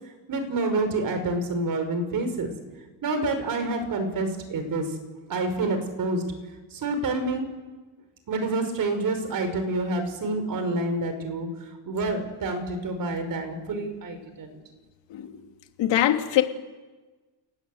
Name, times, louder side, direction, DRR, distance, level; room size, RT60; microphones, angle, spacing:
voice 1, 0.3-2.5 3.0-5.0 5.3-6.3 6.7-7.5 8.3-11.5 11.9-14.6, right 2 dB, 45° right, 8 dB, 5.4 m, -28 dB
voice 2, 15.8-16.4, left 12 dB, 70° left, 5 dB, 2.6 m, -22 dB
29.5 x 19.0 x 7.9 m, 1.3 s
cardioid pair, 130°, 45 cm